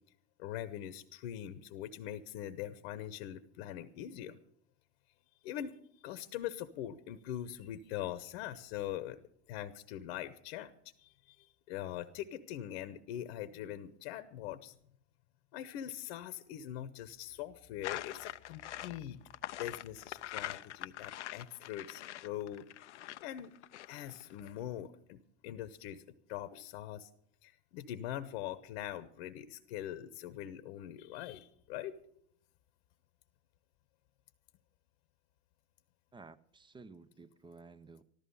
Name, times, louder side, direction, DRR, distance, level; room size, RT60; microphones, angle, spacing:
voice 1, 0.4-4.4 5.4-5.7 6.0-9.2 9.5-10.7 11.0-14.8 15.5-19.2 19.6-22.7 22.9-23.6 23.9-27.1 27.4-32.0, left 11 dB, 65° left, 1.0 m, -42 dB
sound 1, 17.8-24.5, left 13 dB, 90° left, 0.5 m, -44 dB
voice 2, 36.1-38.0, right 4 dB, 15° right, 0.7 m, -54 dB
14.0 x 13.5 x 5.5 m
hypercardioid pair, 90°, 34 cm